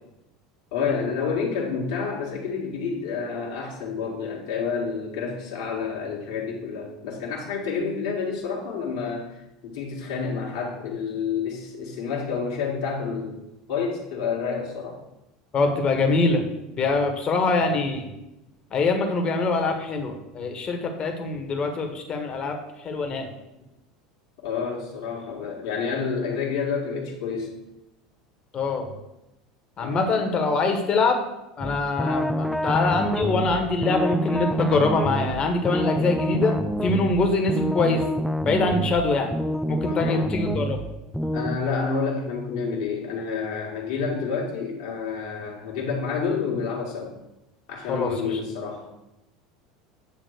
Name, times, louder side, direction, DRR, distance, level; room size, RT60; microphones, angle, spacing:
voice 1, 0.7-9.3 9.6-13.4 13.7-15.0 24.4-27.5 29.8-30.2 39.8-40.3 41.3-47.1 47.7-48.9, left 5 dB, 60° left, -3 dB, 1.8 m, -29 dB
voice 2, 15.5-16.4 16.8-18.1 18.7-22.6 22.8-23.3 28.5-28.9 29.8-31.2 31.6-38.0 38.4-39.3 39.7-40.8 47.9-48.4, left 3 dB, 35° left, 4 dB, 1.6 m, -24 dB
sound 1, 31.6-41.6, equal, ahead, 0.5 m, -27 dB
8.5 x 3.6 x 6.6 m, 0.93 s
hypercardioid pair, 75°, 3 cm